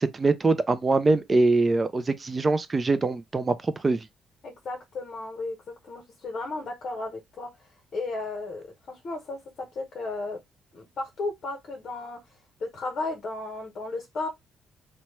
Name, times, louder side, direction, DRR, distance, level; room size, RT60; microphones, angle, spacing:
voice 1, 0.0-4.0, right 3 dB, 25° right, 0.3 m, -23 dB
voice 2, 4.4-5.6 5.8-10.4 10.7-12.2 12.6-14.3, left 3 dB, 45° left, 0.8 m, -34 dB
2.9 x 2.1 x 3.0 m
cardioid pair, 125°, 0 cm